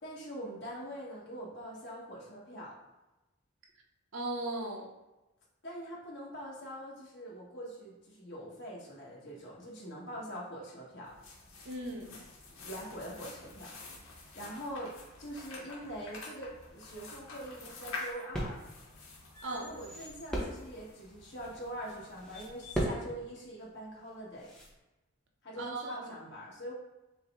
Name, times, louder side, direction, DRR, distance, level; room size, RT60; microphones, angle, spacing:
voice 1, 0.0-2.7 5.6-11.1 12.6-14.9 15.2-18.6 19.5-24.5 25.4-26.7, equal, 55° left, -5 dB, 1.3 m, -44 dB
voice 2, 4.1-4.9 11.6-12.2 19.4-19.7 25.6-26.2, right 2 dB, 60° right, 1 dB, 0.6 m, -37 dB
sound 1, 11.0-22.8, left 3 dB, 75° left, 1.0 m, -48 dB
sound 2, 16.5-24.8, right 1 dB, 5° left, 0.6 m, -40 dB
5.5 x 2.0 x 3.6 m, 1.0 s
head